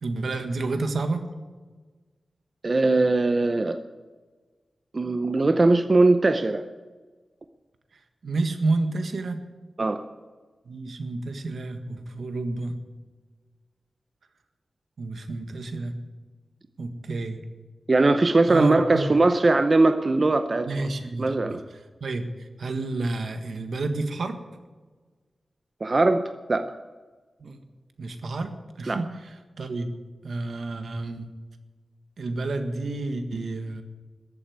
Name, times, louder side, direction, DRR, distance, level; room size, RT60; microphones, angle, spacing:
voice 1, 0.0-1.2 8.2-9.4 10.6-12.8 15.0-16.0 16.8-17.4 18.5-19.1 20.6-21.6 22.0-24.4 27.4-27.6 28.0-29.9 30.2-31.3 32.2-33.8, right 2 dB, 75° right, 7 dB, 1.6 m, -30 dB
voice 2, 2.6-3.8 4.9-6.7 9.8-10.0 17.9-20.9 21.2-21.6 25.8-26.2 26.5-26.7 28.9-29.0, right 2 dB, 35° right, 8 dB, 0.7 m, -20 dB
14.0 x 8.5 x 9.5 m, 1.3 s
wide cardioid pair, 125°, 0 cm